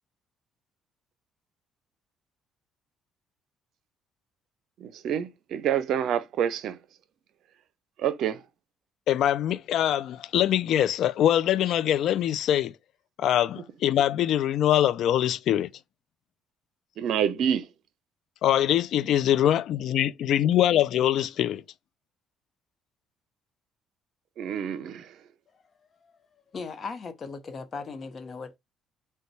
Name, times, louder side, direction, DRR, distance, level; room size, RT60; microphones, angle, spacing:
voice 1, 4.8-6.8 8.0-8.4 17.0-17.6 24.4-25.0, right 9 dB, 70° right, 0.6 m, -27 dB
voice 2, 9.1-12.7 13.2-15.7 18.4-21.6, left 11 dB, 70° left, 0.3 m, -23 dB
voice 3, 26.5-28.6, left 4 dB, 45° left, 0.8 m, -37 dB
3.9 x 2.2 x 4.5 m
supercardioid pair, 65°, 0 cm